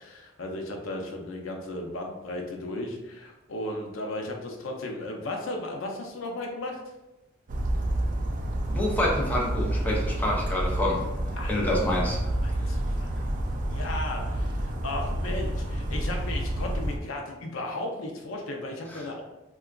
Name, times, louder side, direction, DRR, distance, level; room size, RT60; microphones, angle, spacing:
voice 1, 0.0-6.8 11.4-11.6 12.4-13.1 13.6-19.2, left 2 dB, 80° left, 2 dB, 0.5 m, -35 dB
Bird vocalization bird call bird song, 7.5-17.0, right 1 dB, 40° right, 0.3 m, -29 dB
voice 2, 8.7-11.1 11.5-12.3 18.9-19.1, left 1 dB, 10° left, -3 dB, 0.5 m, -27 dB
3.7 x 2.3 x 2.3 m, 1.0 s
head